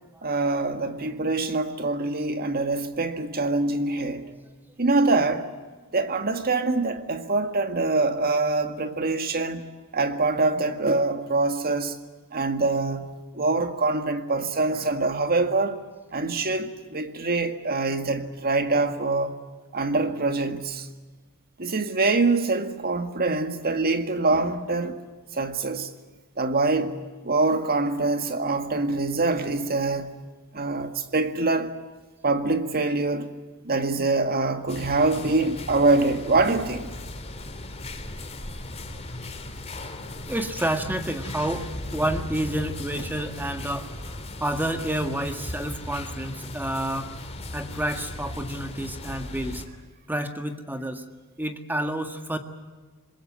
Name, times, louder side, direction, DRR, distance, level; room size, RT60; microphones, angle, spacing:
voice 1, 0.2-4.3 4.8-5.5 5.9-9.7 9.9-12.0 12.3-15.8 16.1-19.3 19.7-20.9 21.6-25.0 25.3-25.9 26.4-30.1 30.5-31.7 32.2-33.3 33.6-36.9, right 3 dB, 45° right, 1.9 m, -24 dB
sound 1, 34.7-49.7, left 1 dB, 30° left, 2.7 m, -37 dB
voice 2, 40.3-43.9 44.4-47.1 47.5-49.6 50.1-51.0 51.4-52.4, right 1 dB, 10° right, 1.9 m, -29 dB
26.0 x 21.5 x 8.7 m
head